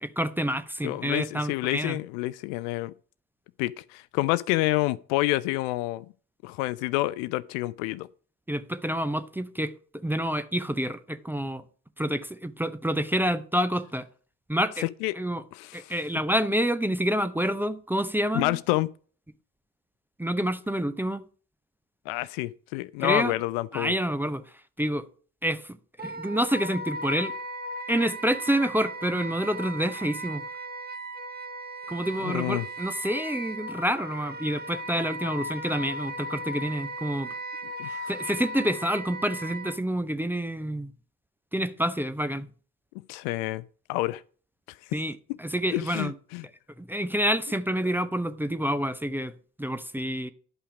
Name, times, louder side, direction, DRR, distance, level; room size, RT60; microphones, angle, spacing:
voice 1, 0.0-2.0 8.5-11.6 12.0-14.1 14.5-14.9 15.2-15.4 15.7-18.6 20.2-21.2 23.0-23.3 23.7-24.4 24.8-25.1 25.4-27.3 27.9-30.4 31.9-37.3 37.8-40.9 41.5-42.5 44.9-46.1 46.8-50.3, equal, 5° right, 0.6 m, -28 dB
voice 2, 0.8-2.9 3.6-6.1 6.4-8.1 15.0-15.2 15.5-15.9 18.3-18.9 22.1-23.9 32.2-32.6 37.8-38.1 43.1-43.6 43.9-44.2 44.9-45.0 45.7-46.5, left 19 dB, 60° left, 0.5 m, -28 dB
Wind instrument woodwind instrument, 26.0-39.8, right 1 dB, 20° right, 1.2 m, -37 dB
11.0 x 5.6 x 4.9 m
figure-of-eight pair, 45°, 43 cm